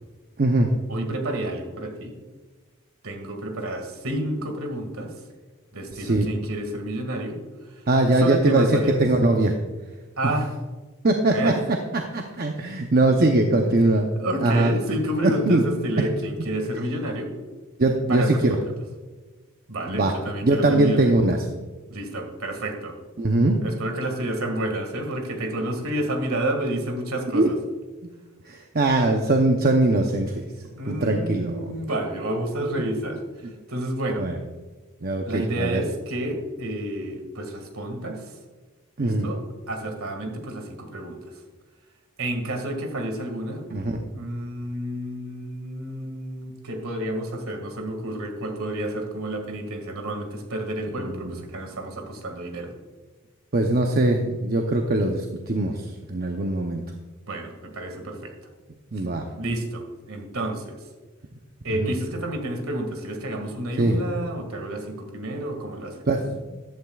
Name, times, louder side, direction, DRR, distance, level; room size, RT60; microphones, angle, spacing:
voice 1, 0.4-0.7 5.9-6.3 7.9-9.6 11.0-14.1 14.4-14.7 15.2-15.6 17.8-18.6 19.9-20.1 20.4-21.4 23.2-23.6 27.3-27.5 28.5-30.5 30.9-31.6 33.4-33.5 34.2-34.4 35.0-35.8 39.0-39.3 43.7-44.0 50.9-51.4 53.5-56.8 58.9-59.3 61.7-61.9 63.8-64.0 66.1-66.6, right 2 dB, 40° right, 3 dB, 0.7 m, -21 dB
voice 2, 0.9-2.1 3.0-5.1 5.7-7.4 8.2-9.0 10.2-10.5 11.3-11.6 14.2-17.3 18.1-18.6 19.7-21.1 21.9-23.0 23.6-27.6 30.8-33.2 33.7-34.2 35.3-38.2 39.0-39.4 39.7-41.2 42.2-43.6 44.1-52.7 57.3-58.3 59.4-59.8 60.1-60.8 61.6-66.0, right 1 dB, 65° right, 4 dB, 1.9 m, -30 dB
14.5 x 11.5 x 2.4 m, 1.3 s
head